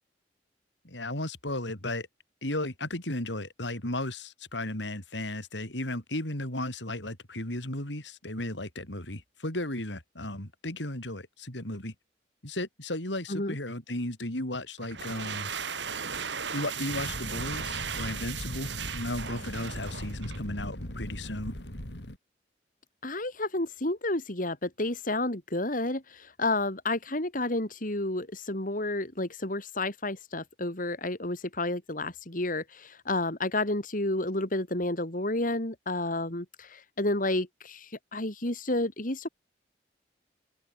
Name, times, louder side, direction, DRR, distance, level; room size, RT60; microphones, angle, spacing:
voice 1, 0.8-2.1 2.4-11.9 12.4-15.5 16.5-21.5, left 1 dB, 85° left, 6.7 m, -35 dB
sound 1, 14.8-20.5, right 6 dB, 80° right, 4.1 m, -37 dB
Fire, 16.9-22.2, equal, 70° left, 4.8 m, -39 dB
voice 2, 23.0-39.3, left 2 dB, 50° left, 3.4 m, -31 dB
head